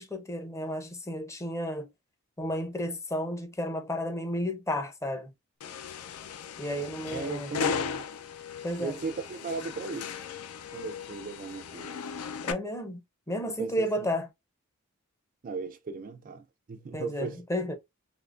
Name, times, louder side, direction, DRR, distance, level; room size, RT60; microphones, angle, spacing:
voice 1, 0.0-1.9 2.4-5.3 6.6-7.5 8.6-9.0 12.4-13.0 13.3-14.3 16.9-17.7, left 1 dB, 15° left, 0.6 m, -32 dB
sound 1, 5.6-12.5, left 6 dB, 75° left, 0.5 m, -36 dB
voice 2, 7.1-8.1 8.8-10.1 10.7-12.0 13.6-14.1 15.4-17.4, right 4 dB, 40° right, 0.4 m, -37 dB
3.6 x 2.8 x 2.4 m
head